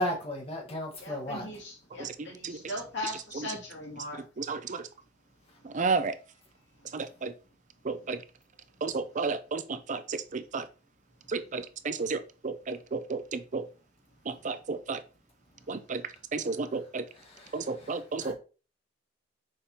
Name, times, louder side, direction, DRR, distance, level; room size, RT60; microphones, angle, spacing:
voice 1, 0.0-1.5 17.1-18.4, equal, 30° left, 0 dB, 1.4 m, -35 dB
voice 2, 1.0-4.2, left 1 dB, 65° left, -1 dB, 2.5 m, -39 dB
voice 3, 2.0-2.6 4.4-4.8 5.6-6.1 6.9-7.3 7.8-8.2 8.8-10.6 11.3-13.6 14.3-15.0 15.7-16.0 16.3-17.0 17.5-18.4, right 4 dB, 40° right, 10 dB, 0.5 m, -32 dB
6.5 x 5.2 x 2.9 m, 0.34 s
head